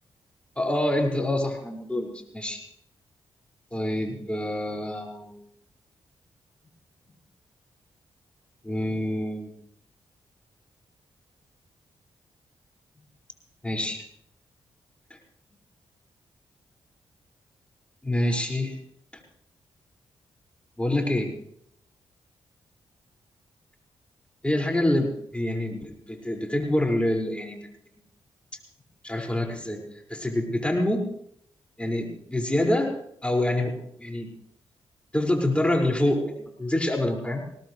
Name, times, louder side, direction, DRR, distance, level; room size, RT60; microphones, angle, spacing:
voice 1, 0.6-2.6 3.7-5.4 8.6-9.5 13.6-14.0 18.0-18.8 20.8-21.3 24.4-27.6 29.0-29.8 30.1-31.1 31.8-32.9 33.2-34.3 35.1-37.4, left 1 dB, 10° left, 1 dB, 5.7 m, -26 dB
21.5 x 18.0 x 3.3 m, 0.68 s
hypercardioid pair, 40°, 11 cm